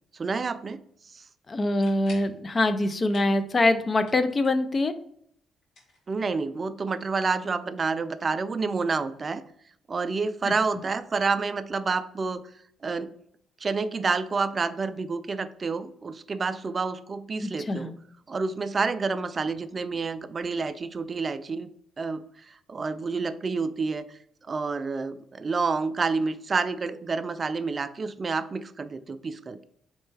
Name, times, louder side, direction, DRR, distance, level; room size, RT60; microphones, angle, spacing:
voice 1, 0.1-0.8 1.1-1.2 6.1-9.4 9.9-12.4 12.8-13.1 13.6-17.9 18.3-21.7 22.0-24.2 24.5-29.6, right 4 dB, 35° right, 12 dB, 0.3 m, -29 dB
voice 2, 1.5-4.9 10.4-10.5 17.4-17.9, left 2 dB, 30° left, 10 dB, 0.4 m, -24 dB
sound 1, 1.6-2.4 2.8-3.4 3.7-4.7 5.6-6.6, left 1 dB, 75° left, 1.8 m, -51 dB
4.2 x 3.2 x 3.2 m, 0.68 s
cardioid pair, 90°, 0 cm